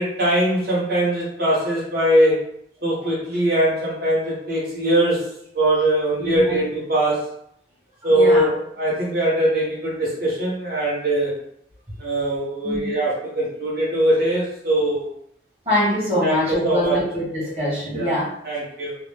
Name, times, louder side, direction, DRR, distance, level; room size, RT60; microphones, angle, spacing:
voice 1, 0.0-2.5 2.8-7.3 8.0-11.3 12.0-15.1 16.2-17.0 17.9-18.2 18.4-19.0, right 1 dB, 55° right, -6 dB, 1.0 m, -21 dB
voice 2, 6.2-6.6 8.1-8.5 12.6-12.8 15.6-18.3, left 1 dB, 35° right, -7 dB, 1.4 m, -23 dB
2.8 x 2.0 x 3.2 m, 0.71 s
head